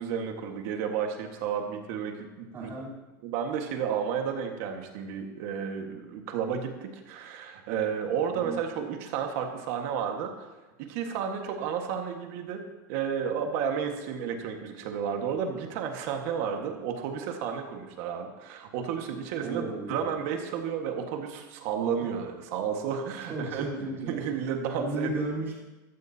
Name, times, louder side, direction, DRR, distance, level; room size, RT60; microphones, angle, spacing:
voice 1, 0.0-2.7 3.2-10.5 10.8-12.6 12.9-23.7 24.1-25.1, right 7 dB, 45° right, 4 dB, 1.6 m, -32 dB
voice 2, 2.5-2.9 8.3-8.6 19.4-20.0 22.0-22.1 23.3-24.2 24.7-25.6, right 2 dB, 25° right, -5 dB, 3.6 m, -34 dB
15.0 x 14.0 x 2.8 m, 1.1 s
supercardioid pair, 170°, 11 cm